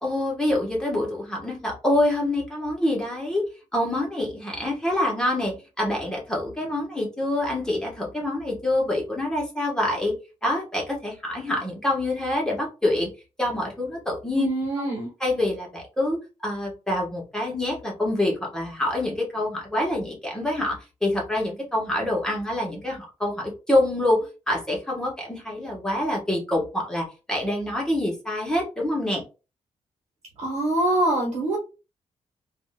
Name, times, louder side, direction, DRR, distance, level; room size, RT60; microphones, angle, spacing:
voice 1, 0.0-3.4 3.7-10.1 10.4-13.1 13.4-14.5 14.8-14.9 15.2-29.2, left 1 dB, 5° left, -2 dB, 1.1 m, -26 dB
voice 2, 14.3-15.1 30.4-31.6, right 1 dB, 70° right, -1 dB, 1.1 m, -24 dB
3.5 x 2.5 x 2.2 m, 0.31 s
wide cardioid pair, 135°, 11 cm